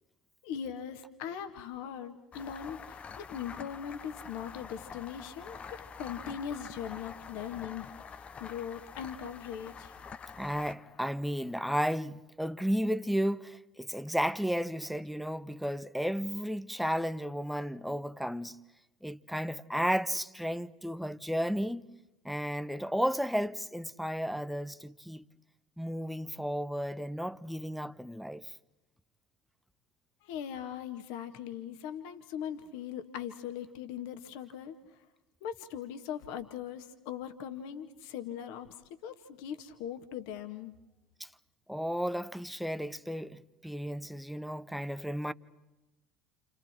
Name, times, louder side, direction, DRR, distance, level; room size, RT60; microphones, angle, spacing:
voice 1, 0.4-7.9 8.4-9.9 30.2-34.8 35.4-38.7 39.0-40.7, left 9 dB, 60° left, 2.0 m, -40 dB
sound 1, 2.3-11.7, left 6 dB, 30° left, 1.0 m, -47 dB
voice 2, 10.3-18.6 19.0-21.8 22.2-25.2 25.8-28.5 41.2-41.3 41.7-45.3, equal, ahead, 1.0 m, -33 dB
30.0 x 29.5 x 4.5 m
figure-of-eight pair, 70°, 4 cm